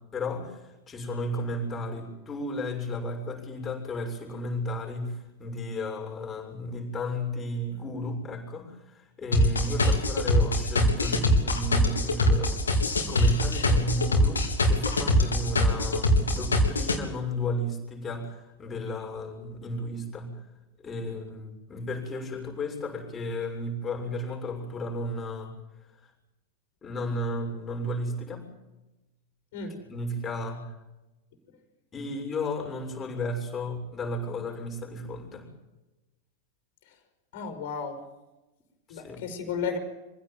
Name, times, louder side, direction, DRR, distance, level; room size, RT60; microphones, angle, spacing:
voice 1, 0.1-20.4 20.8-25.5 26.8-28.5 29.6-30.7 31.9-35.5 38.9-39.2, left 1 dB, 20° left, 1 dB, 7.0 m, -33 dB
sound 1, 9.3-17.0, left 1 dB, 75° left, 3.8 m, -22 dB
voice 2, 37.3-38.0 38.9-39.8, left 6 dB, 50° left, 6 dB, 5.1 m, -33 dB
26.0 x 16.5 x 9.3 m, 1.0 s
figure-of-eight pair, 90°, 0 cm